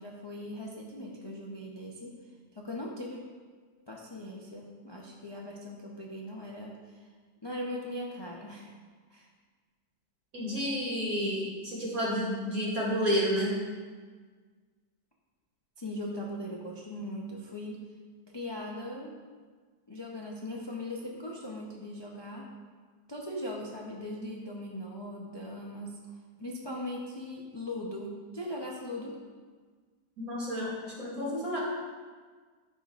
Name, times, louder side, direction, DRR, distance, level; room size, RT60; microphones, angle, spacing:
voice 1, 0.0-2.1 2.5-3.2 3.9-7.1 7.4-8.7 9.1-9.3 15.8-17.8 18.3-19.1 19.9-22.5 23.1-29.2, left 1 dB, 40° left, -3 dB, 0.3 m, -39 dB
voice 2, 10.3-13.5 30.2-31.6, equal, 55° right, -7 dB, 2.9 m, -30 dB
13.0 x 5.4 x 2.5 m, 1.5 s
omnidirectional pair, 1.8 m